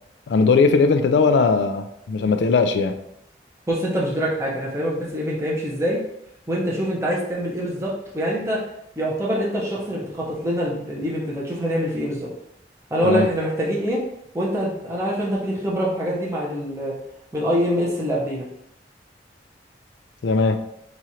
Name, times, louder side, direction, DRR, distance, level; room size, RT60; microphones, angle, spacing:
voice 1, 0.3-3.0 13.0-13.3 20.2-20.6, left 4 dB, 85° left, 8 dB, 0.4 m, -19 dB
voice 2, 3.7-6.0 6.5-8.6 9.0-12.3 12.9-14.0 14.3-16.9 17.3-18.4, equal, 15° right, -5 dB, 0.8 m, -24 dB
3.0 x 2.5 x 4.2 m, 0.78 s
head